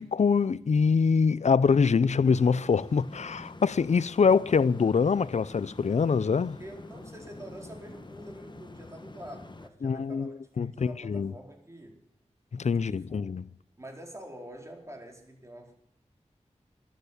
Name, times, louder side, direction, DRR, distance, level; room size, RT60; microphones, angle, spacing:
voice 1, 0.0-6.6 9.8-10.3 10.6-11.3 12.5-13.4, left 5 dB, 70° left, 0.5 m, -24 dB
sound 1, 2.2-9.7, left 2 dB, 40° left, 1.4 m, -46 dB
voice 2, 6.6-12.0 12.9-13.3 13.8-15.7, right 1 dB, 25° right, 4.4 m, -46 dB
13.5 x 9.3 x 9.9 m
wide cardioid pair, 50°, 12 cm